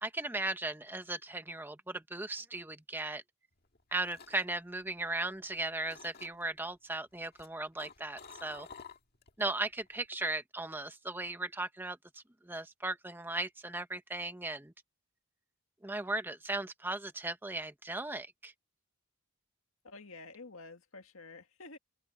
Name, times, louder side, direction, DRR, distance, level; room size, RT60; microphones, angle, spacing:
voice 1, 0.0-3.2 3.9-8.7 9.4-14.7 15.8-18.5, right 2 dB, 10° right, 0.8 m, -37 dB
sound 1, 3.6-5.5 5.8-6.6 7.1-9.4 9.7-10.1, left 5 dB, 45° left, 1.9 m, -53 dB
voice 2, 19.8-21.8, left 3 dB, 70° left, 1.9 m, -50 dB
open air
head